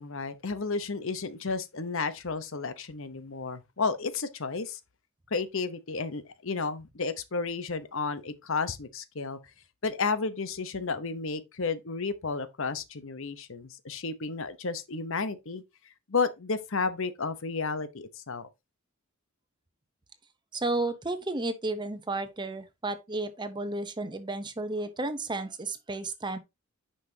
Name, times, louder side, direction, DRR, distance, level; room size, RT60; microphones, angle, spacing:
voice 1, 0.0-4.8 5.3-9.4 9.8-15.6 16.1-18.5, left 4 dB, 60° left, 0.9 m, -32 dB
voice 2, 20.5-26.4, right 2 dB, 20° right, 0.8 m, -32 dB
9.9 x 5.5 x 2.8 m
head